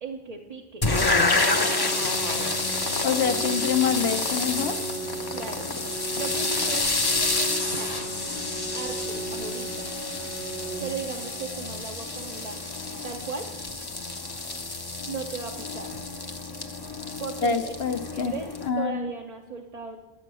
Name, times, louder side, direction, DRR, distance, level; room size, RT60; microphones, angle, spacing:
voice 1, 0.0-0.8 5.3-5.7 5.9-7.9 8.7-9.9 10.8-12.6 13.0-13.5 15.1-15.9 17.2-17.7 18.1-20.0, right 5 dB, 40° right, 1 dB, 0.7 m, -36 dB
sound 1, 0.8-18.7, left 3 dB, 25° left, 0.7 m, -29 dB
Organ, 0.8-11.8, right 4 dB, 60° right, 1.0 m, -37 dB
voice 2, 3.0-4.8 17.4-18.3 18.7-19.1, left 6 dB, 65° left, 7 dB, 1.0 m, -26 dB
11.0 x 7.7 x 6.2 m, 1.1 s
omnidirectional pair, 1.1 m